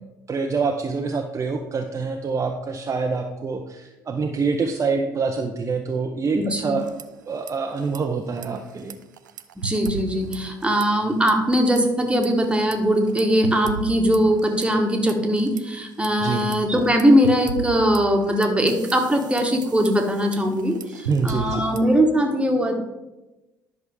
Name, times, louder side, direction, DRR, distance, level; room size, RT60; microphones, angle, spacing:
voice 1, 0.3-6.9 7.3-9.0 16.2-16.5 20.9-21.6, right 4 dB, 30° right, 3 dB, 0.7 m, -26 dB
voice 2, 6.3-6.7 9.6-22.8, equal, 10° right, 3 dB, 1.4 m, -20 dB
sound 1, 6.8-7.5 7.8-8.0 8.4-11.0 11.3-11.8 12.2-15.6 16.0-22.0, right 6 dB, 80° right, 0.4 m, -36 dB
10.5 x 5.9 x 3.6 m, 1.0 s
figure-of-eight pair, 50°, 10 cm